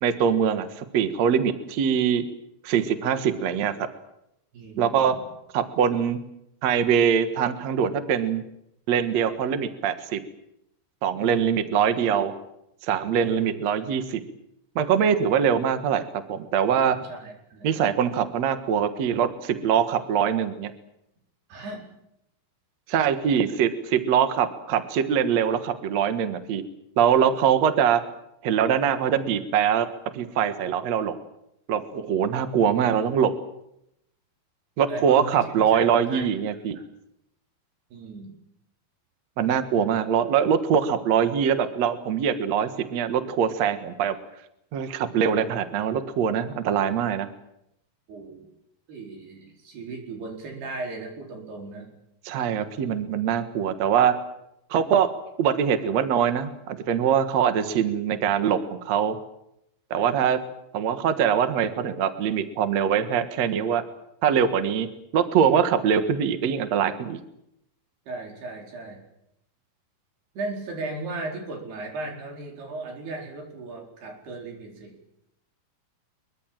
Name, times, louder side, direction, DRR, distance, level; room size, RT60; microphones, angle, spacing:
voice 1, 0.0-2.3 2.6-3.7 4.8-5.2 5.5-6.2 6.6-8.5 8.9-10.2 11.0-12.3 12.9-14.2 14.8-16.0 16.3-17.0 17.6-20.7 22.9-26.6 27.0-28.0 28.4-29.9 30.1-31.2 31.7-33.4 34.8-36.8 39.4-44.2 44.7-47.3 52.3-54.1 54.7-55.1 55.4-59.2 59.9-60.4 60.7-63.8 64.2-67.2, right 8 dB, 55° right, 10 dB, 2.3 m, -23 dB
voice 2, 4.5-5.2 11.1-11.6 13.1-13.5 17.0-17.7 21.5-21.9 34.9-36.3 37.9-38.3 48.1-48.5 48.9-51.9 68.1-69.0 70.3-74.9, right 3 dB, 90° right, 2 dB, 6.6 m, -36 dB
23.5 x 23.0 x 7.6 m, 0.81 s
omnidirectional pair, 4.5 m